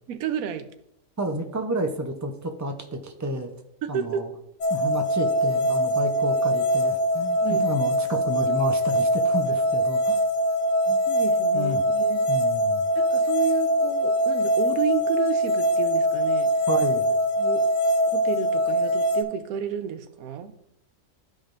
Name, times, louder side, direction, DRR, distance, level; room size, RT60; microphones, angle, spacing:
voice 1, 0.1-0.7 3.8-4.4 7.4-7.7 11.1-12.3 13.0-16.5 17.4-17.7 18.1-20.5, right 8 dB, 90° right, 11 dB, 1.1 m, -31 dB
voice 2, 1.2-3.5 3.9-4.3 4.7-10.2 10.9-11.0 11.5-11.8 12.3-12.8 16.7-17.1, right 1 dB, 25° right, 5 dB, 0.4 m, -31 dB
sound 1, 4.6-19.2, equal, 65° left, 1.1 m, -23 dB
12.5 x 5.1 x 2.6 m, 0.83 s
omnidirectional pair, 1.4 m